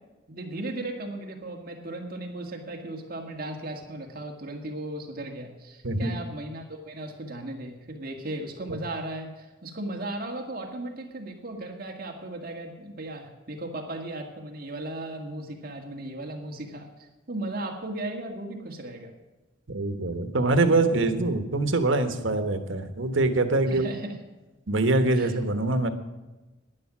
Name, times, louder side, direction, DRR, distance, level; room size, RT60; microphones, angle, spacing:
voice 1, 0.3-19.1 23.7-24.1 25.1-25.3, right 1 dB, 50° right, 2 dB, 2.0 m, -36 dB
voice 2, 19.7-23.9 24.7-25.9, right 2 dB, 90° right, 8 dB, 1.3 m, -24 dB
12.0 x 10.5 x 6.1 m, 1.1 s
head